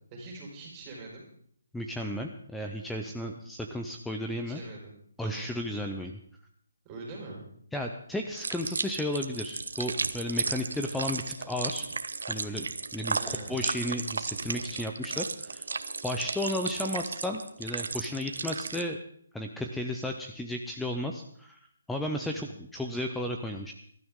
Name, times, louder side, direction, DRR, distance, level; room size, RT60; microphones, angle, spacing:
voice 1, 0.1-1.2 4.3-4.9 5.2-5.5 6.8-7.5 13.1-13.7 22.1-22.5, right 3 dB, 20° right, -2 dB, 4.4 m, -43 dB
voice 2, 1.7-4.6 5.2-6.2 7.7-11.9 12.3-12.7 12.9-15.7 16.0-19.0 19.3-21.6 21.9-23.7, left 1 dB, 5° left, 3 dB, 0.5 m, -34 dB
sound 1, 8.4-18.8, right 4 dB, 80° right, 1.1 m, -34 dB
21.5 x 12.5 x 3.7 m, 0.63 s
hypercardioid pair, 170°, 0 cm